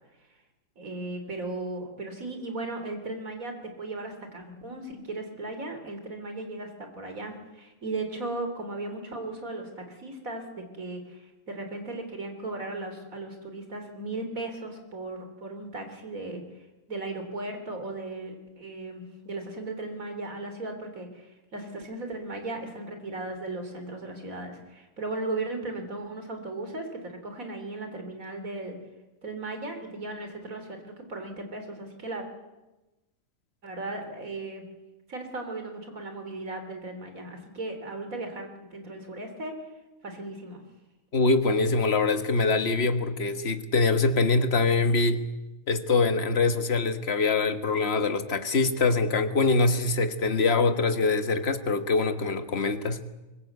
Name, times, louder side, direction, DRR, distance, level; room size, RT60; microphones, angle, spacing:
voice 1, 0.8-16.4 16.9-28.8 29.2-32.3 33.6-34.7 35.1-39.6 40.0-40.6, right 2 dB, 75° right, 6 dB, 3.8 m, -36 dB
voice 2, 41.1-45.2 45.7-53.0, left 3 dB, 50° left, 9 dB, 1.6 m, -24 dB
23.5 x 21.0 x 8.1 m, 1.1 s
omnidirectional pair, 1.4 m